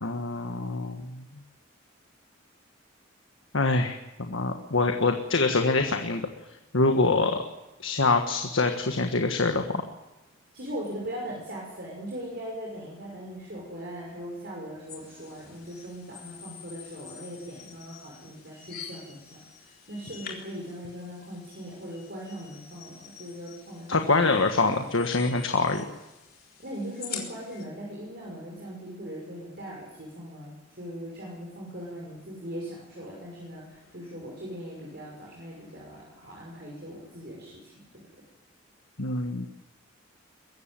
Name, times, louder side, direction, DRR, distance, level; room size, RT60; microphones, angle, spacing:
voice 1, 0.0-1.2 3.5-6.3 6.7-7.4 7.8-9.8 23.9-25.8 39.0-39.5, left 3 dB, 75° left, 5 dB, 1.6 m, -25 dB
voice 2, 10.5-24.4 26.6-38.0, equal, 55° right, -3 dB, 6.1 m, -40 dB
sound 1, 14.9-27.6, left 8 dB, 50° left, 3.9 m, -46 dB
22.5 x 15.0 x 9.2 m, 0.98 s
head